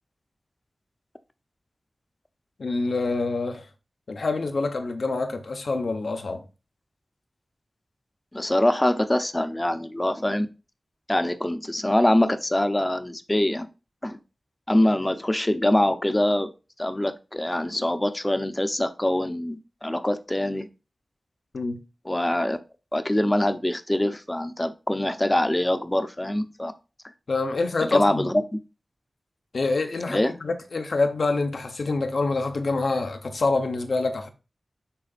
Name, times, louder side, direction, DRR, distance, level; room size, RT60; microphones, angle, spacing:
voice 1, 2.6-3.7 4.1-6.4 21.5-21.8 27.3-28.3 29.5-34.3, left 3 dB, 80° left, 1.1 m, -26 dB
voice 2, 8.3-10.5 11.1-13.7 14.0-14.2 14.7-16.5 16.8-20.7 22.1-22.6 22.9-26.7 27.8-28.4 30.1-30.3, left 1 dB, 20° left, 0.7 m, -24 dB
11.5 x 3.9 x 2.5 m
wide cardioid pair, 85°, 0 cm